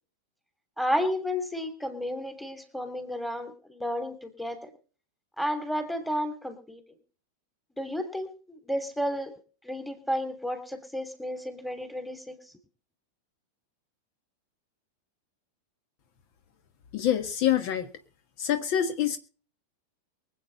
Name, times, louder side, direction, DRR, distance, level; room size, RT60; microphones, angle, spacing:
voice 1, 0.8-4.7 5.4-6.8 7.8-9.3 9.6-12.4, equal, ahead, 8 dB, 3.0 m, -32 dB
voice 2, 16.9-17.9 18.4-19.2, left 10 dB, 45° left, 9 dB, 1.6 m, -26 dB
24.0 x 8.7 x 4.1 m, 0.40 s
figure-of-eight pair, 90°, 0 cm